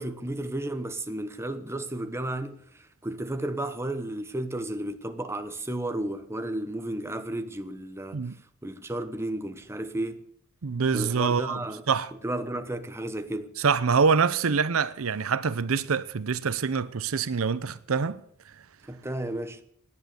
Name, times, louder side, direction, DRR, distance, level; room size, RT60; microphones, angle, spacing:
voice 1, 0.0-8.3 8.6-10.2 10.9-11.8 12.2-13.5 18.9-19.6, right 1 dB, 10° right, 1.0 m, -33 dB
voice 2, 10.6-11.6 11.9-12.1 13.6-18.2, right 5 dB, 75° right, 0.6 m, -25 dB
17.5 x 10.5 x 6.6 m
head